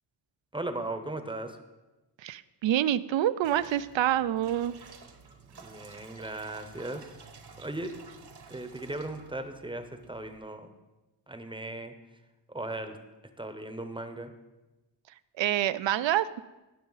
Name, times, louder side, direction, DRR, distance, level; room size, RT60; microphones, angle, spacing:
voice 1, 0.5-1.6 5.5-7.1 7.6-7.9 8.5-10.8 11.3-11.9 12.5-13.0 13.4-14.3, right 2 dB, 10° right, 8 dB, 0.7 m, -37 dB
voice 2, 2.2-4.8 15.4-16.4, right 12 dB, 85° right, 15 dB, 0.5 m, -27 dB
sound 1, 3.4-10.4, right 5 dB, 60° right, 1.0 m, -52 dB
18.0 x 6.4 x 3.9 m, 1.1 s
wide cardioid pair, 150°, 44 cm